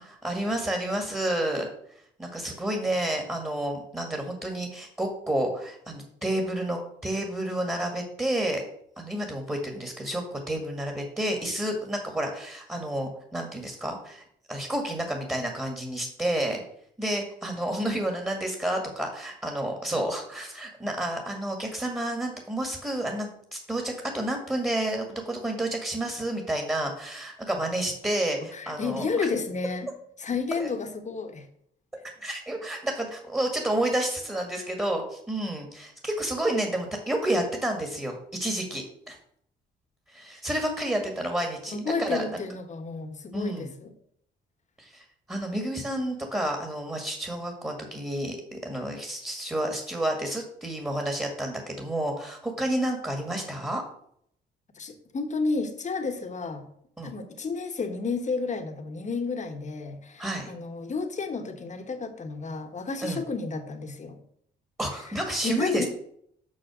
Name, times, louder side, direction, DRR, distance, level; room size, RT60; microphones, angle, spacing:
voice 1, 0.0-1.7 2.2-8.6 9.0-16.6 17.0-29.3 30.6-30.7 32.2-39.2 40.1-42.2 43.3-43.7 44.8-53.8 57.0-57.1 60.2-60.5 63.0-63.2 64.8-65.9, right 1 dB, 10° right, 2 dB, 1.9 m, -30 dB
voice 2, 28.5-29.9 30.2-31.5 41.7-43.9 54.7-56.7 57.0-64.2 65.4-65.9, left 4 dB, 35° left, 7 dB, 1.3 m, -31 dB
6.4 x 6.1 x 6.2 m, 0.69 s
cardioid pair, 90°, 20 cm